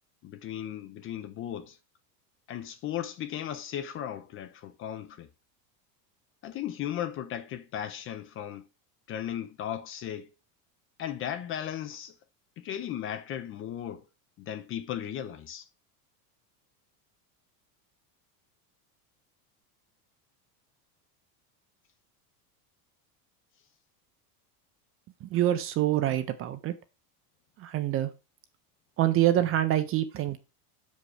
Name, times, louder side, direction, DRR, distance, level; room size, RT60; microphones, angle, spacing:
voice 1, 0.2-1.8 2.5-5.3 6.4-8.6 9.1-10.3 11.0-12.1 12.6-14.0 14.4-15.7, left 10 dB, 30° left, 0.5 m, -36 dB
voice 2, 25.2-26.7 27.6-28.1 29.0-30.4, right 13 dB, 30° right, 0.5 m, -26 dB
6.0 x 5.3 x 4.8 m
supercardioid pair, 140°, 48 cm